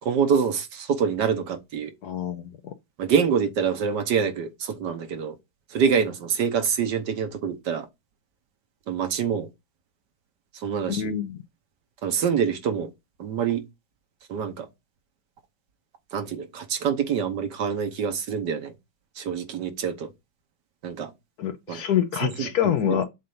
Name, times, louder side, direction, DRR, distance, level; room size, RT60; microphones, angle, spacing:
voice 1, 0.0-1.9 3.0-5.3 5.7-7.9 8.9-9.5 10.5-11.1 12.0-12.9 13.2-13.6 14.3-14.7 16.1-18.7 19.2-20.1 20.8-21.1 21.7-21.8 22.2-23.0, right 7 dB, 65° right, 1.5 m, -26 dB
voice 2, 2.0-2.7 10.9-11.4 21.4-23.0, left 10 dB, 65° left, 1.1 m, -26 dB
7.6 x 2.6 x 5.4 m
omnidirectional pair, 2.1 m